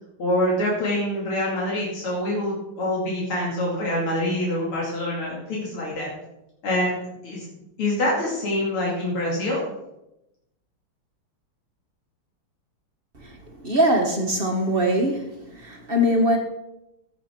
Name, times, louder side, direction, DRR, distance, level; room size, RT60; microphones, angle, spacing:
voice 1, 0.2-6.1 6.6-6.9 7.2-7.5 7.8-9.6, left 1 dB, 75° left, -5 dB, 3.3 m, -25 dB
voice 2, 13.6-15.3 15.6-16.4, equal, 30° right, 2 dB, 1.6 m, -21 dB
16.0 x 7.2 x 4.5 m, 0.89 s
omnidirectional pair, 2.4 m